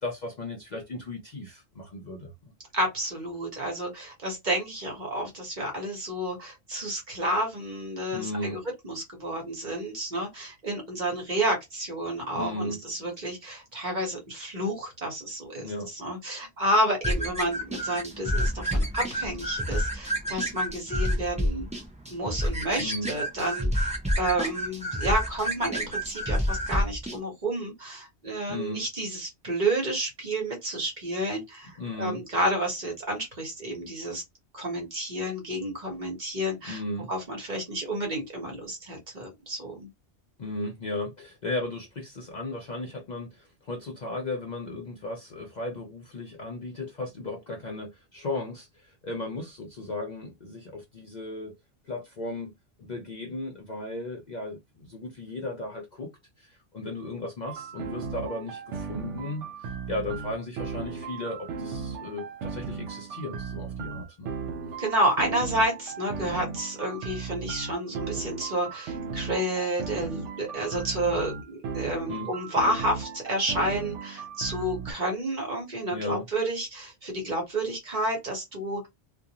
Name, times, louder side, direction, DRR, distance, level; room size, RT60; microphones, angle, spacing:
voice 1, 0.0-2.5 8.1-8.6 12.3-12.8 15.6-15.9 22.8-23.1 28.5-28.8 31.8-32.2 36.6-37.1 40.4-51.5 51.8-56.1 56.4-64.3 72.1-72.3 75.9-76.3, left 2 dB, 50° left, 0.5 m, -36 dB
voice 2, 2.7-15.6 15.9-21.7 22.1-34.2 34.5-36.8 37.1-39.9 64.8-78.9, right 1 dB, 40° right, 1.0 m, -30 dB
sound 1, 17.0-27.2, equal, 10° right, 0.4 m, -29 dB
sound 2, 57.4-74.9, right 5 dB, 80° right, 0.9 m, -36 dB
2.4 x 2.2 x 2.8 m
omnidirectional pair, 1.2 m